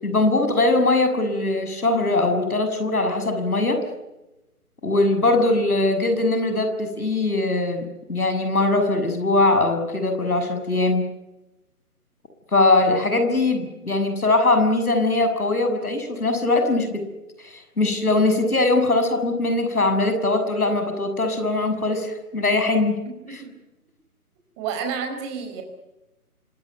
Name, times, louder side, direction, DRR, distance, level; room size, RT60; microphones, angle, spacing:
voice 1, 0.0-3.8 4.8-11.0 12.5-17.0 17.4-22.9, left 2 dB, 70° left, 7 dB, 7.0 m, -21 dB
voice 2, 23.0-23.5 24.6-25.6, right 6 dB, 20° right, 4 dB, 4.7 m, -30 dB
26.5 x 18.5 x 9.4 m, 0.99 s
figure-of-eight pair, 150°, 45 cm